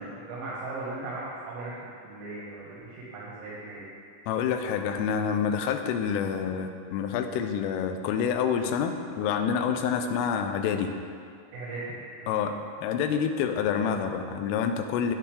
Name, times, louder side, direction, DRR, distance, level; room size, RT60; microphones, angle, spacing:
voice 1, 0.1-1.7 2.0-3.9 9.8-10.0 11.5-12.3, right 2 dB, 90° right, -8 dB, 4.3 m, -38 dB
voice 2, 4.3-10.9 12.3-12.5 12.8-15.1, left 7 dB, 85° left, 6 dB, 3.1 m, -27 dB
12.5 x 9.1 x 3.3 m, 2.3 s
omnidirectional pair, 6.0 m